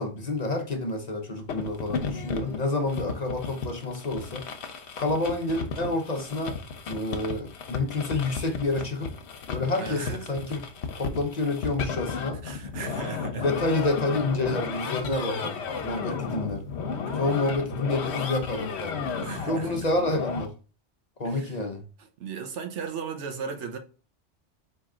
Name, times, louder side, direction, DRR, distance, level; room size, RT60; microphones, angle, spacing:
voice 1, 0.0-4.4 5.0-6.6 6.9-9.1 9.5-10.6 10.9-12.4 13.2-16.7 17.1-19.1 19.5-20.5 21.2-21.8, left 2 dB, 40° left, 0.7 m, -29 dB
sound 1, 1.5-20.4, left 5 dB, 70° left, 1.0 m, -34 dB
voice 2, 9.8-10.2 12.4-13.4 16.1-16.2 17.1-17.2 19.2-19.7 21.2-21.6 22.2-23.8, right 6 dB, 90° right, 1.1 m, -36 dB
4.4 x 3.1 x 3.7 m
omnidirectional pair, 1.2 m